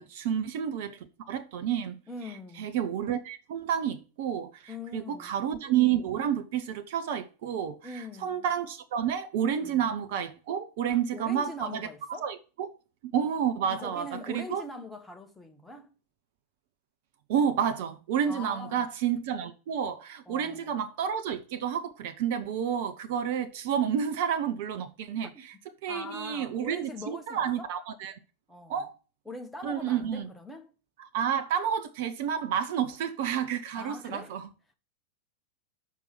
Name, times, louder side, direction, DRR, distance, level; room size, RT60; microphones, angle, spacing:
voice 1, 0.0-2.0 2.6-12.7 13.1-14.6 17.3-25.5 25.8-28.2 28.7-28.9 29.6-30.3 31.0-34.5, right 8 dB, 50° right, 0.8 m, -30 dB
voice 2, 2.1-2.7 4.7-5.3 7.8-8.4 9.6-9.9 10.9-12.3 13.7-15.9 18.3-18.9 20.3-20.8 25.2-25.5 25.9-27.7 28.5-28.9 29.2-30.7 33.7-34.4, left 2 dB, 5° left, 1.3 m, -42 dB
6.5 x 5.3 x 5.7 m
figure-of-eight pair, 90°, 0 cm